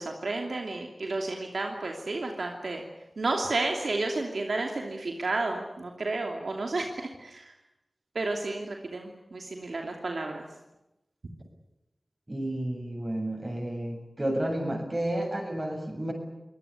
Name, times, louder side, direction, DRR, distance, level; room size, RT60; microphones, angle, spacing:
voice 1, 0.0-2.8 3.2-7.5 8.1-10.5, right 2 dB, 80° right, 2 dB, 2.8 m, -31 dB
voice 2, 12.3-16.1, right 1 dB, 30° right, 4 dB, 7.5 m, -31 dB
24.5 x 19.0 x 9.8 m, 0.94 s
wide cardioid pair, 50°, 0 cm